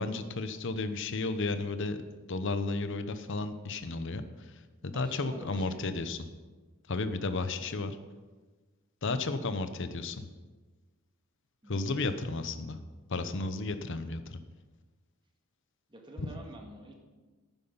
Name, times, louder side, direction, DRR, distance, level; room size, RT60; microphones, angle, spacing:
voice 1, 0.0-2.0 2.3-4.5 4.8-6.2 6.9-8.0 9.0-10.3 11.7-12.8 13.1-14.4 16.2-16.3, left 3 dB, 60° left, 10 dB, 0.8 m, -33 dB
voice 2, 4.9-5.8 11.6-12.1 15.9-16.9, right 1 dB, 20° right, 1 dB, 1.7 m, -48 dB
11.0 x 9.1 x 5.6 m, 1.3 s
head